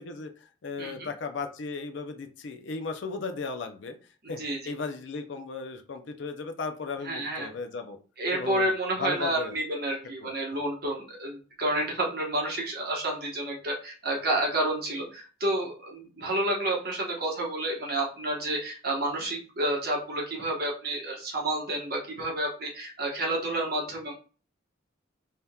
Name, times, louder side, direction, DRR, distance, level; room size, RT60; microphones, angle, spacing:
voice 1, 0.0-4.0 4.3-8.0 8.3-8.7 9.0-9.6 10.2-10.3, left 4 dB, 65° left, 6 dB, 0.5 m, -36 dB
voice 2, 4.4-4.7 7.0-7.5 8.2-24.1, right 1 dB, 50° right, -2 dB, 1.1 m, -30 dB
3.5 x 2.8 x 2.3 m, 0.37 s
head